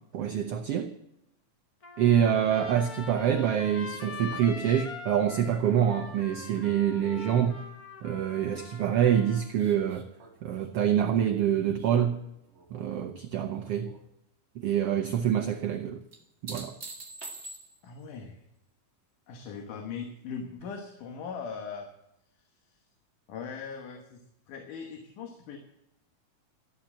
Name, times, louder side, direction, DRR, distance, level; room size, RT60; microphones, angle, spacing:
voice 1, 0.1-0.9 2.0-7.6 8.0-10.1 10.4-12.2 12.7-13.9 14.6-16.0 16.4-16.7, right 9 dB, 85° right, 1.3 m, -26 dB
Trumpet, 1.8-9.5, left 4 dB, 35° left, 1.6 m, -43 dB
sound 1, 9.6-13.1 13.4-14.0 16.1-18.0 20.6-20.7, right 3 dB, 30° right, 1.4 m, -46 dB
voice 2, 17.8-18.4 19.3-21.9 22.4-22.5 23.3-25.6, left 6 dB, 75° left, 2.8 m, -40 dB
13.5 x 8.6 x 7.3 m
omnidirectional pair, 3.7 m